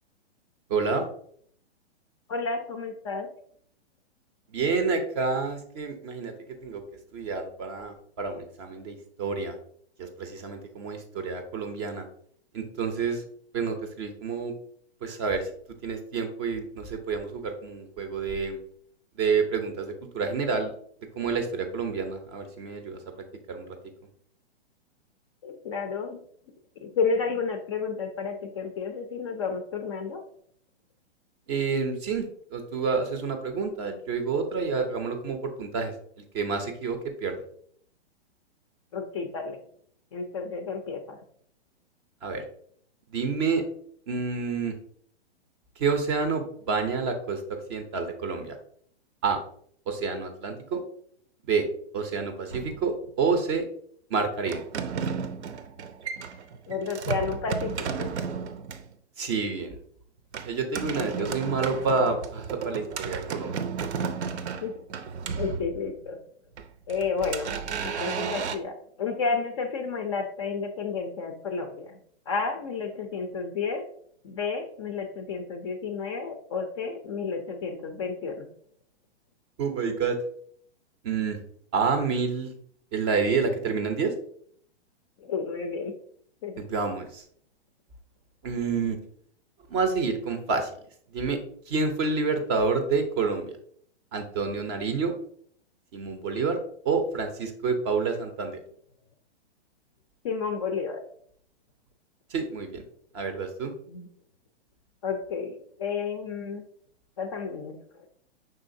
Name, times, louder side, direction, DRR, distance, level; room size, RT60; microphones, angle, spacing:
voice 1, 0.7-1.1 4.5-6.3 6.6-6.8 7.1-9.6 10.0-12.0 12.5-13.2 13.5-14.5 15.0-15.5 15.8-18.6 19.2-20.7 21.2-23.0 23.5-23.8 31.5-32.3 32.5-35.9 36.3-37.4 42.2-42.4 43.1-43.6 44.1-44.7 45.8-47.4 47.7-48.6 49.2-49.4 49.9-50.8 51.5-51.7 51.9-53.7 54.1-54.6 59.2-59.8 60.4-63.5 79.6-80.2 81.0-81.4 81.7-82.5 82.9-84.1 86.6-87.2 88.4-89.0 89.7-90.7 91.1-91.4 91.7-93.6 94.1-95.1 95.9-98.6 102.3-102.8 103.1-103.7, right 4 dB, 25° right, 6 dB, 0.5 m, -28 dB
voice 2, 2.3-3.3 25.4-26.2 26.8-30.2 38.9-39.6 40.1-41.2 56.7-58.1 61.0-61.3 64.0-64.1 64.6-64.7 65.4-66.2 66.9-67.5 67.8-72.0 72.3-73.8 74.2-78.5 85.2-85.9 86.4-86.6 100.2-101.0 103.9-104.1 105.0-106.6 107.2-107.7, left 5 dB, 30° left, 6 dB, 0.4 m, -31 dB
sound 1, 52.5-53.3 54.5-58.9 60.3-66.1 66.6-68.6, right 6 dB, 80° right, 0.6 m, -33 dB
5.6 x 3.7 x 2.6 m, 0.62 s
hypercardioid pair, 145°, 33 cm